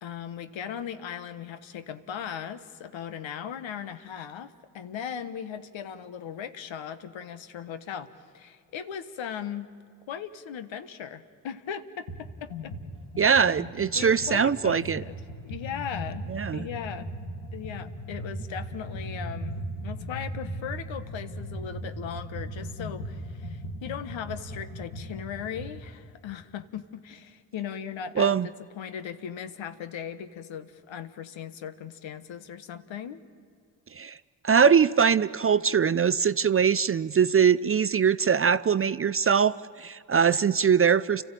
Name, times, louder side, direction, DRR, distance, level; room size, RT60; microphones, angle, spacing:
voice 1, 0.0-8.1 8.3-9.7 10.1-12.7 13.3-13.4 13.9-15.1 15.4-16.2 16.5-17.1 17.5-28.3 28.7-33.2, left 8 dB, 65° left, 12 dB, 1.4 m, -38 dB
sound 1, 12.1-12.2 12.5-25.8, equal, 90° left, 2.5 m, -38 dB
voice 2, 13.2-15.0 16.3-16.7 28.2-28.5 33.9-34.2 34.4-41.2, right 7 dB, 30° right, 15 dB, 0.5 m, -22 dB
30.0 x 14.0 x 9.0 m, 2.3 s
hypercardioid pair, 45°, 49 cm